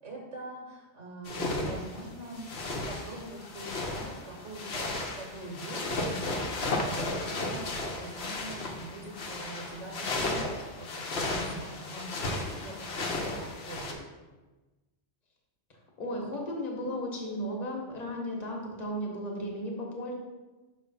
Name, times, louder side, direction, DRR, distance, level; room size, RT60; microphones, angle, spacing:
voice 1, 0.0-2.5 2.9-14.0, right 2 dB, 85° right, -2 dB, 1.4 m, -44 dB
sound 1, 1.3-13.9, left 2 dB, 65° left, 1.0 m, -34 dB
voice 2, 16.0-20.1, equal, 35° left, -2 dB, 1.2 m, -35 dB
5.6 x 3.1 x 5.5 m, 1.2 s
omnidirectional pair, 1.2 m